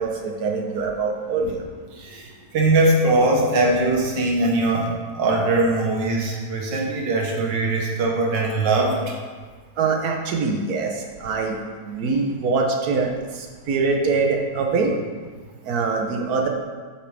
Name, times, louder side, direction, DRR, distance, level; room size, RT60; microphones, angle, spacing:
voice 1, 0.0-1.6 9.8-11.6 11.9-14.9 15.6-16.5, right 4 dB, 65° right, 2 dB, 1.2 m, -23 dB
voice 2, 2.5-9.1, right 2 dB, 85° right, -1 dB, 1.8 m, -21 dB
8.4 x 6.0 x 3.3 m, 1.5 s
omnidirectional pair, 1.9 m